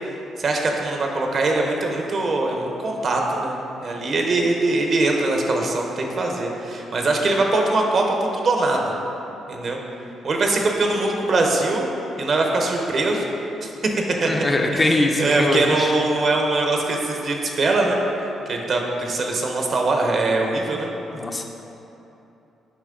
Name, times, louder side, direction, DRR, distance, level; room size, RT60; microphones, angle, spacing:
voice 1, 0.4-3.6 3.8-8.9 9.5-9.8 10.2-11.9 12.2-13.3 14.2-14.3 14.7-14.8 15.2-18.0 18.5-20.9, right 2 dB, 50° right, 1 dB, 0.9 m, -22 dB
voice 2, 14.2-15.9 21.1-21.4, left 2 dB, 25° left, 2 dB, 0.6 m, -22 dB
7.3 x 5.1 x 3.7 m, 2.9 s
cardioid pair, 90°, 0 cm